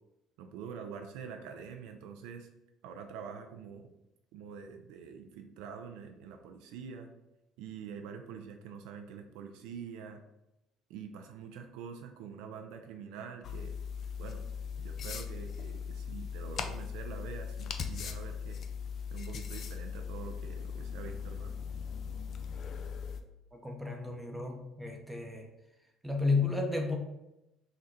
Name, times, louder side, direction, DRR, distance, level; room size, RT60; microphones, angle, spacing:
voice 1, 0.4-2.5 2.8-3.9 4.3-7.1 7.6-10.2 10.9-13.7 14.2-14.4 14.8-18.6 19.1-21.6, right 6 dB, 75° right, 5 dB, 0.4 m, -45 dB
sound 1, 13.4-23.2, left 6 dB, 55° left, 0.4 m, -39 dB
voice 2, 23.5-25.5 26.0-27.0, left 3 dB, 10° right, 2 dB, 0.7 m, -32 dB
3.8 x 2.1 x 4.2 m, 0.90 s
hypercardioid pair, 60°, 0 cm